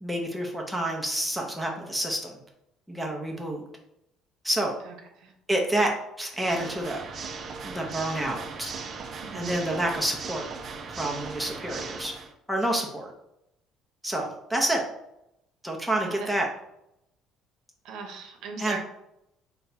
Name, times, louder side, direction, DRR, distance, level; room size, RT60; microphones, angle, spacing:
voice 1, 0.0-2.4 2.9-3.6 4.4-4.7 5.5-7.0 7.6-8.7 9.3-10.5 10.9-12.1 12.5-13.1 14.0-14.8 15.6-16.5 18.6-18.8, right 1 dB, ahead, -1 dB, 0.7 m, -28 dB
voice 2, 4.8-5.3 9.2-9.6 16.0-16.3 17.8-18.8, right 5 dB, 70° right, 3 dB, 0.8 m, -39 dB
Water / Mechanisms, 6.3-12.3, right 4 dB, 40° right, 0.4 m, -38 dB
4.0 x 2.2 x 4.0 m, 0.82 s
cardioid pair, 135°, 0 cm